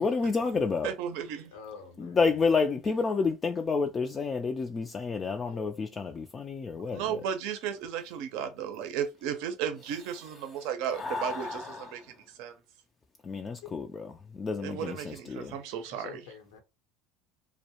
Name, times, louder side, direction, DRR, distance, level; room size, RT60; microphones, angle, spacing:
voice 1, 0.0-0.9 2.0-7.2 10.9-12.1 13.2-15.6, left 4 dB, 30° left, 0.3 m, -30 dB
voice 2, 0.8-1.5 6.9-12.5 14.6-16.2, right 8 dB, 75° right, 0.5 m, -34 dB
voice 3, 1.5-2.2 5.4-5.8 13.6-13.7 15.9-16.6, left 6 dB, 90° left, 0.8 m, -46 dB
2.2 x 2.1 x 2.8 m
supercardioid pair, 100°, 0 cm